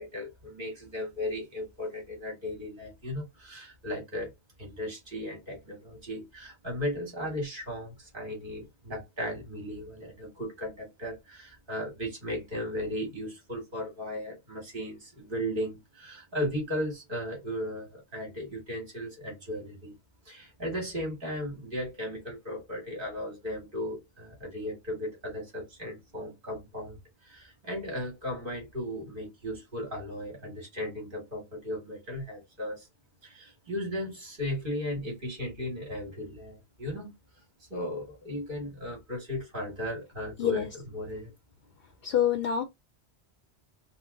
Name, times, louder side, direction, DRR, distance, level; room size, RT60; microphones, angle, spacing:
voice 1, 0.0-4.3 4.6-19.9 20.3-27.0 27.3-32.8 33.2-37.1 37.7-41.3, left 1 dB, 50° right, 2.0 m, -36 dB
voice 2, 42.0-42.6, left 9 dB, 65° left, 0.7 m, -26 dB
3.8 x 2.1 x 3.8 m
omnidirectional pair, 1.1 m